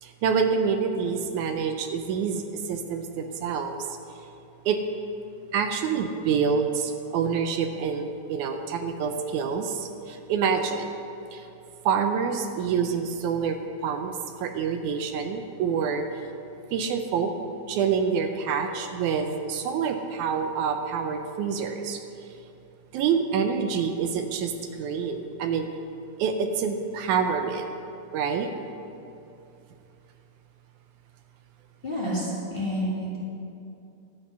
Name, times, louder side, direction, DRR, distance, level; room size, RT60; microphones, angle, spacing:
voice 1, 0.0-3.9 4.7-4.8 5.5-10.9 11.3-11.5 11.9-13.6 13.8-14.1 14.4-16.1 16.7-17.3 17.7-22.0 22.9-24.5 24.8-25.7 26.2-27.7 28.1-28.5, right 6 dB, 80° right, 6 dB, 2.0 m, -27 dB
voice 2, 31.8-33.2, equal, 20° left, -7 dB, 1.7 m, -29 dB
11.0 x 8.6 x 5.5 m, 2.7 s
omnidirectional pair, 3.5 m